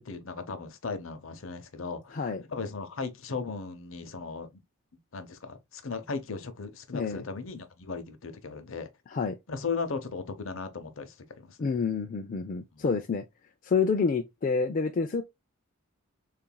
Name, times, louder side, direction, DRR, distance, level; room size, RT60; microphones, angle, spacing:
voice 1, 0.0-2.2 2.5-4.6 5.1-8.9 9.5-11.6 12.7-12.8, left 4 dB, 65° left, 0.7 m, -37 dB
voice 2, 2.1-2.4 6.9-7.2 9.1-9.4 11.6-13.2 13.6-15.2, left 5 dB, 40° left, 0.4 m, -28 dB
6.8 x 2.6 x 2.2 m
head